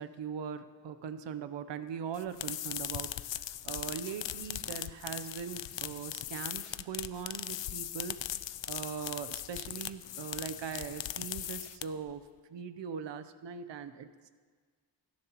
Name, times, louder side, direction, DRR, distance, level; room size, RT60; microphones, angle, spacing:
voice 1, 0.0-8.2 8.7-12.2 12.5-14.3, right 7 dB, 75° right, 11 dB, 0.8 m, -41 dB
sound 1, 2.1-12.1, left 12 dB, 80° left, 0.6 m, -39 dB
28.0 x 10.5 x 2.9 m, 1.5 s
wide cardioid pair, 150°, 43 cm